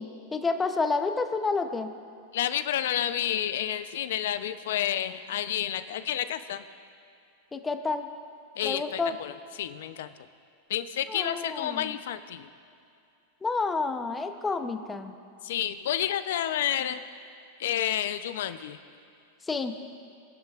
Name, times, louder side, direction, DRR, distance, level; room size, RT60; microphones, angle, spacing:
voice 1, 0.0-1.9 7.5-8.1 8.6-9.2 11.1-12.0 13.4-15.2 19.4-19.7, left 4 dB, 10° left, 7 dB, 0.7 m, -29 dB
voice 2, 2.3-6.6 8.6-9.3 9.6-10.1 10.7-12.5 15.4-17.0 17.6-18.8, left 11 dB, 75° left, 12 dB, 0.6 m, -30 dB
24.5 x 10.5 x 2.4 m, 2.6 s
supercardioid pair, 145°, 0 cm